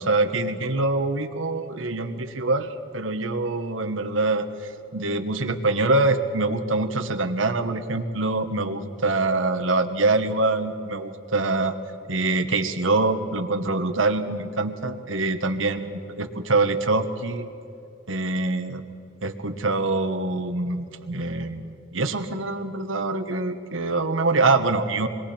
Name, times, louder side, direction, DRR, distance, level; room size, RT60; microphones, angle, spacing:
voice 1, 0.0-11.7 12.1-17.5 18.1-18.8 19.2-25.1, right 2 dB, 80° right, 8 dB, 1.3 m, -24 dB
27.0 x 21.5 x 4.4 m, 2.7 s
head